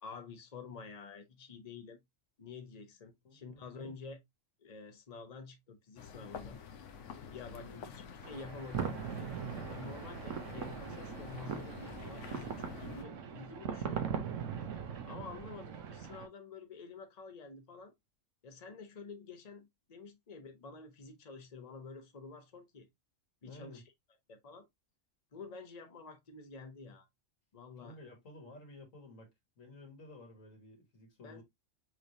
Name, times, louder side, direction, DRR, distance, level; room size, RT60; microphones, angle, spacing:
voice 1, 0.0-2.0 2.4-4.2 4.6-6.6 7.3-7.9 8.3-14.2 15.1-17.9 18.4-22.9 23.4-23.8 24.3-24.7 25.3-27.1 27.5-28.0 31.2-31.4, left 4 dB, 35° left, 1.0 m, -49 dB
voice 2, 3.2-4.0 7.5-7.9 15.1-15.3 23.5-23.8 27.8-29.3 29.6-31.4, left 1 dB, 90° left, 2.2 m, -53 dB
sound 1, 6.0-13.0, left 6 dB, 70° left, 1.1 m, -48 dB
sound 2, 8.2-16.3, right 7 dB, 75° right, 1.1 m, -40 dB
6.1 x 3.2 x 2.7 m
omnidirectional pair, 1.3 m